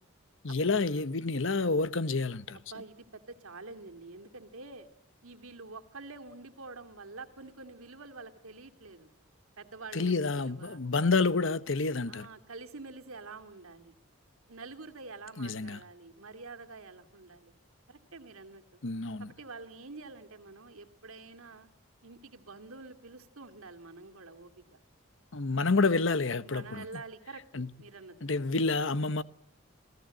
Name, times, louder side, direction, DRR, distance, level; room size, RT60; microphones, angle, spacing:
voice 1, 0.4-2.6 9.9-12.3 15.4-15.8 18.8-19.3 25.3-26.8 27.5-27.7 28.2-29.2, left 3 dB, 65° left, 1.0 m, -28 dB
voice 2, 2.5-4.9 5.2-9.1 9.6-10.8 12.1-13.9 14.5-17.5 17.9-18.6 19.2-21.7 22.0-24.8 26.4-28.3, right 3 dB, 90° right, 2.4 m, -47 dB
28.0 x 18.0 x 9.0 m
head